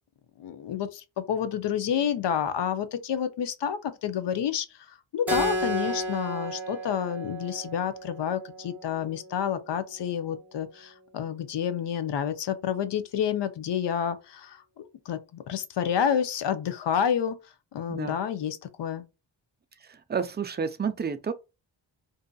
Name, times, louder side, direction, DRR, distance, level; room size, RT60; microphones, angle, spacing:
voice 1, 0.4-17.4 17.7-19.0, left 8 dB, 60° left, 0.6 m, -29 dB
Keyboard (musical), 5.3-10.4, equal, 5° right, 1.1 m, -34 dB
voice 2, 20.1-21.3, right 6 dB, 25° right, 0.3 m, -30 dB
2.6 x 2.4 x 2.2 m
cardioid pair, 70°, 47 cm